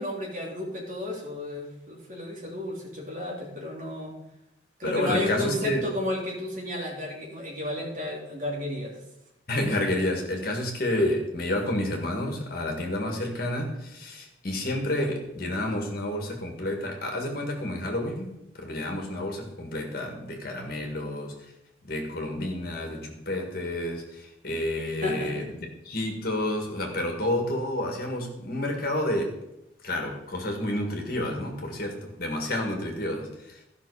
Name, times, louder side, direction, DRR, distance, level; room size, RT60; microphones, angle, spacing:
voice 1, 0.0-4.2 4.8-8.9 25.0-25.4, left 1 dB, 45° right, -3 dB, 2.8 m, -32 dB
voice 2, 4.8-5.9 9.5-21.3 21.8-29.3 29.8-33.6, left 1 dB, 50° left, 2 dB, 1.9 m, -30 dB
13.5 x 5.9 x 4.9 m, 0.86 s
head